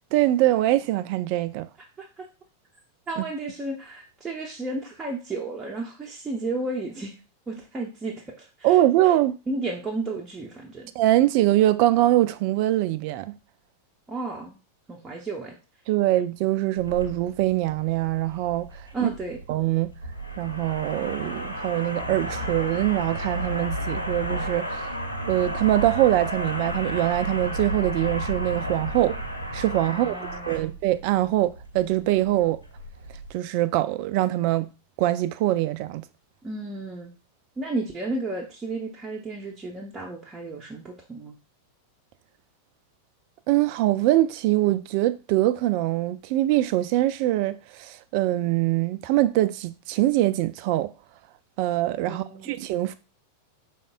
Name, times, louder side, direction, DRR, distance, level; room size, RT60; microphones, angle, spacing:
voice 1, 0.1-1.7 3.2-3.3 8.6-9.4 11.0-13.4 15.9-18.7 19.0-19.1 19.5-19.9 20.4-24.9 25.3-29.2 29.5-30.1 30.5-32.6 33.3-34.7 35.0-36.0 43.5-50.9 51.6-52.9, right 15 dB, 45° right, 0.3 m, -23 dB
voice 2, 3.1-7.1 7.5-8.8 9.5-10.9 14.1-14.6 14.9-15.5 18.9-19.4 29.9-30.7 36.4-37.1 37.6-41.3 52.1-52.6, right 2 dB, 15° right, 0.7 m, -33 dB
sound 1, 16.8-33.3, equal, 90° right, 0.7 m, -33 dB
5.2 x 3.5 x 2.2 m
figure-of-eight pair, 90°, 0 cm